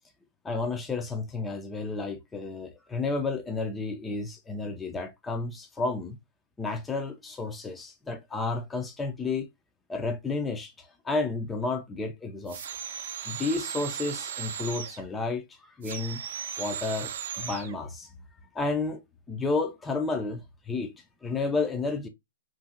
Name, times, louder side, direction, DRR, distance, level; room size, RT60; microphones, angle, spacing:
voice 1, 0.4-6.2 6.6-9.5 9.9-12.6 13.3-16.2 16.6-18.1 18.5-19.0 19.3-22.1, left 3 dB, 10° left, 0.4 m, -31 dB
sound 1, 12.5-15.1 15.8-17.7, right 8 dB, 60° right, 0.5 m, -37 dB
2.8 x 2.5 x 2.5 m
hypercardioid pair, 150°, 0 cm